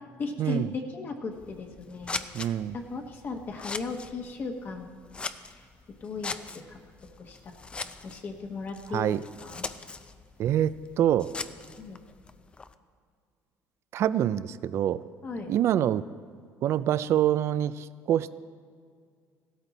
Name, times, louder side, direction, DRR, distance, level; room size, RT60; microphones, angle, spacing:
voice 1, 0.2-4.9 5.5-5.7 6.0-6.8 7.2-9.7 11.8-12.0 15.2-15.5, left 3 dB, 40° left, 2 dB, 1.2 m, -37 dB
Scissors, 1.3-12.7, left 4 dB, 20° left, 0.5 m, -41 dB
voice 2, 2.3-2.7 8.9-9.2 10.4-11.3 13.9-15.0 15.5-16.0 16.6-18.3, right 11 dB, 50° right, 16 dB, 0.4 m, -25 dB
16.0 x 13.5 x 4.1 m, 2.1 s
cardioid pair, 135°, 6 cm